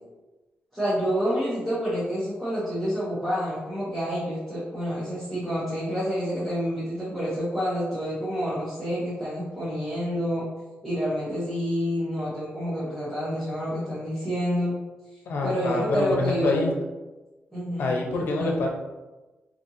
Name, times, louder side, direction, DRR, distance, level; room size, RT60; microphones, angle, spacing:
voice 1, 0.7-10.4 10.8-14.7 15.4-16.6 17.5-17.9 18.2-18.5, equal, ahead, -11 dB, 0.9 m, -28 dB
voice 2, 15.3-16.7 17.8-18.7, left 3 dB, 70° left, 0 dB, 0.7 m, -26 dB
4.1 x 2.9 x 2.7 m, 1.1 s
wide cardioid pair, 165°, 4 cm